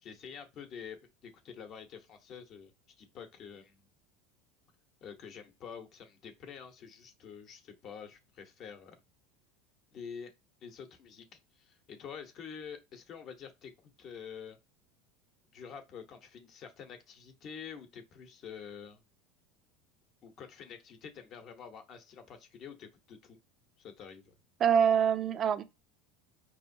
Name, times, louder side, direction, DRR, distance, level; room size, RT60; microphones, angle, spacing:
voice 1, 0.0-2.7 3.0-3.8 5.0-9.0 9.9-10.3 10.6-13.7 14.0-14.6 15.5-19.0 20.2-23.4 23.8-24.3, left 7 dB, 35° left, 0.9 m, -47 dB
voice 2, 24.6-25.6, right 8 dB, 30° right, 0.5 m, -25 dB
5.3 x 3.0 x 2.7 m
supercardioid pair, 155°, 0 cm